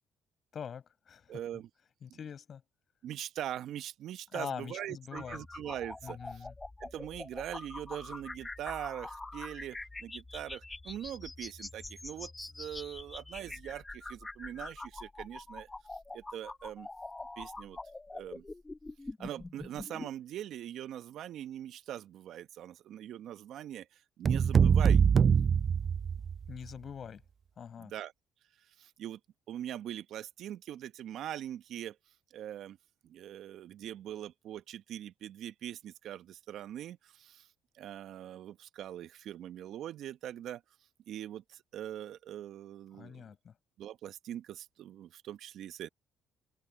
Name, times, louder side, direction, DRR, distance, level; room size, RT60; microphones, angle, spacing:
voice 1, 0.5-1.4 2.0-2.6 4.3-5.4 6.0-6.5 26.5-27.2 27.6-27.9 43.0-43.5, left 7 dB, 50° left, 6.5 m, -43 dB
voice 2, 1.3-1.7 3.0-6.5 6.8-15.7 16.1-16.9 17.4-17.8 18.1-18.4 19.2-25.0 27.8-28.1 28.8-29.2 29.5-32.0 32.3-32.8 33.0-37.5 37.7-40.6 41.1-43.3 43.8-45.9, right 11 dB, 70° right, 1.1 m, -42 dB
sound 1, 5.1-20.1, left 2 dB, 20° left, 1.2 m, -44 dB
sound 2, 24.2-26.5, right 7 dB, 45° right, 0.5 m, -24 dB
open air
supercardioid pair, 65°, 0 cm